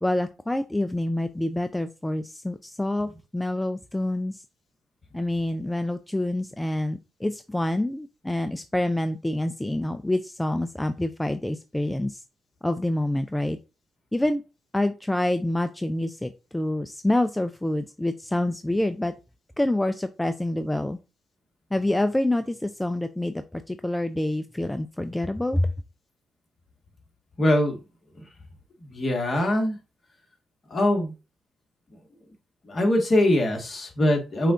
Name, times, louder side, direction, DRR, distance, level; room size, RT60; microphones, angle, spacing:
voice 1, 0.0-4.4 5.1-12.2 12.6-13.6 14.1-14.4 14.7-19.1 19.6-21.0 21.7-25.7, left 1 dB, 10° left, 10 dB, 0.4 m, -27 dB
voice 2, 27.4-27.8 28.2-28.3 28.8-29.8 30.7-31.1 32.6-34.5, left 1 dB, 45° left, 2 dB, 1.6 m, -22 dB
5.5 x 2.4 x 3.8 m, 0.30 s
supercardioid pair, 55°, 0 cm